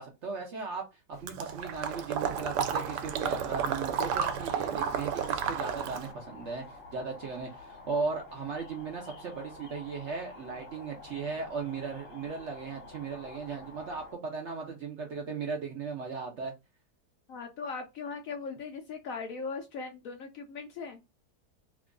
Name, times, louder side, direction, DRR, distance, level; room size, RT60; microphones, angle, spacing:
voice 1, 0.0-16.5, right 4 dB, 60° right, 0.7 m, -37 dB
Water / Liquid, 1.3-6.1, right 7 dB, 80° right, 1.2 m, -32 dB
sound 1, 2.6-14.1, left 3 dB, 55° left, 1.2 m, -49 dB
voice 2, 17.3-21.0, left 4 dB, 70° left, 0.8 m, -39 dB
3.0 x 2.4 x 3.6 m
omnidirectional pair, 1.8 m